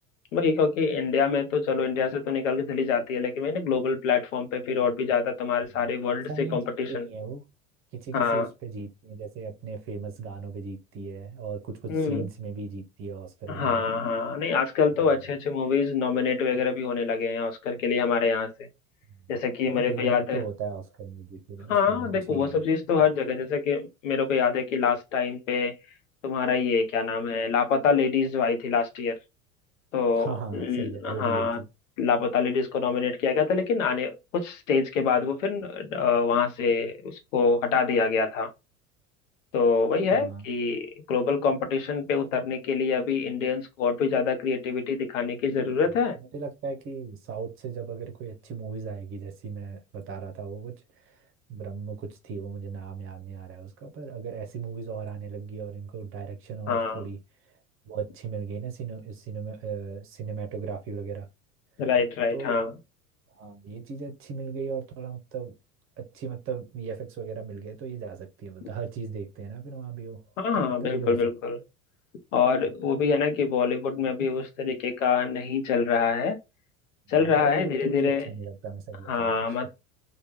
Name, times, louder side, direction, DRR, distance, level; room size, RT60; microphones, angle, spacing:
voice 1, 0.3-7.1 8.1-8.5 11.9-12.2 13.5-18.5 19.3-20.4 21.7-25.7 26.2-29.1 29.9-31.6 32.0-38.5 39.5-46.2 56.7-57.0 61.8-62.7 70.4-71.6 72.3-76.4 77.1-78.3 79.1-79.7, left 5 dB, 60° left, 0.9 m, -25 dB
voice 2, 5.7-7.4 7.9-13.8 19.7-23.1 30.2-31.7 40.1-40.5 46.3-57.2 57.4-57.6 57.8-61.3 62.3-62.6 63.3-65.5 66.0-70.2 70.5-71.2 77.3-79.7, right 5 dB, 30° right, 0.8 m, -37 dB
3.2 x 2.3 x 3.1 m
figure-of-eight pair, 75°, 42 cm